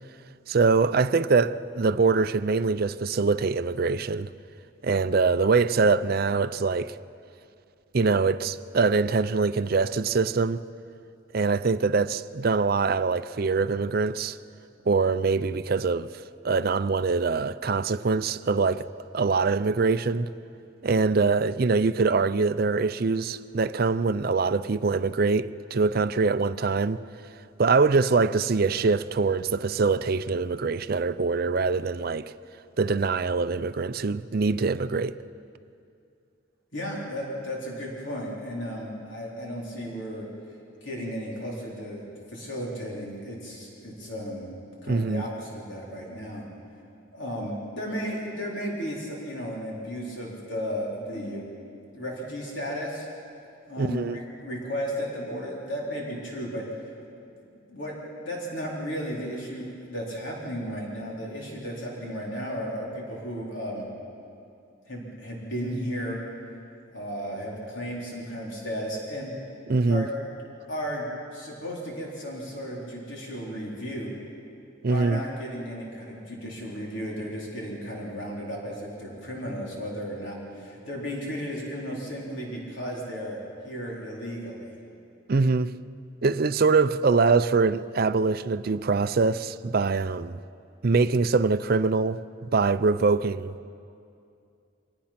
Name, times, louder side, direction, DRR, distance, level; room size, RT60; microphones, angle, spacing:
voice 1, 0.5-4.3 4.8-7.0 7.9-10.6 11.3-14.4 14.9-16.1 16.4-18.9 19.1-20.3 20.8-27.0 27.6-32.3 32.8-35.1 44.9-45.2 53.8-54.2 69.7-70.1 74.8-75.2 85.3-85.7 86.2-90.4 90.8-93.6, right 4 dB, 45° right, 0.5 m, -23 dB
voice 2, 36.7-40.3 40.8-44.5 44.8-46.4 47.1-51.4 51.9-53.1 53.7-56.7 57.7-57.9 58.2-63.9 64.9-66.2 66.9-69.3 69.9-70.1 70.7-74.1 74.9-83.4 83.6-84.7, equal, 60° left, 3.9 m, -34 dB
26.0 x 19.5 x 5.9 m
head